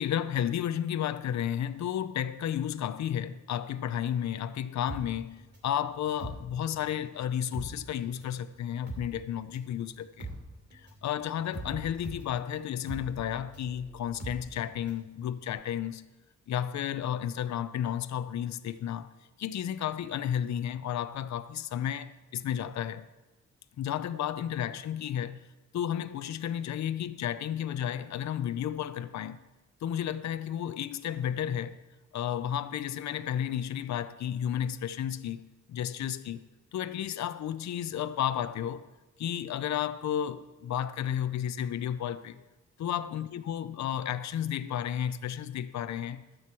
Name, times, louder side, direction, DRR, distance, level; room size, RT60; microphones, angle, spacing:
voice 1, 0.0-10.3 10.7-16.0 16.5-19.1 19.4-23.1 23.8-25.4 25.7-29.4 29.8-31.8 32.1-35.4 35.7-36.4 36.7-38.9 39.2-42.4 42.8-46.2, left 10 dB, 65° left, 0.5 m, -32 dB
sound 1, 4.9-7.1 7.4-15.1 15.4-15.5, right 2 dB, 35° right, 2.6 m, -42 dB
13.0 x 4.6 x 7.5 m
wide cardioid pair, 160°, 31 cm